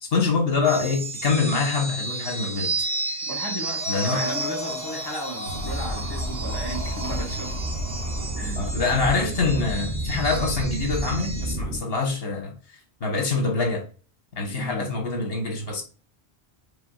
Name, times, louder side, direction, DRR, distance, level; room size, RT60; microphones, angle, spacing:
voice 1, 0.0-2.8 3.9-4.2 8.6-13.8 14.4-15.8, left 4 dB, 65° left, 1.5 m, -25 dB
sound 1, 0.6-11.5, right 2 dB, 35° right, 1.4 m, -33 dB
voice 2, 3.3-7.5 8.4-8.6 14.4-14.9, right 1 dB, 20° left, 1.5 m, -35 dB
Breathing, 3.7-8.6, left 3 dB, 45° left, 1.0 m, -37 dB
sound 2, 5.5-11.8, right 1 dB, 80° right, 1.2 m, -30 dB
4.8 x 3.4 x 2.3 m
omnidirectional pair, 1.1 m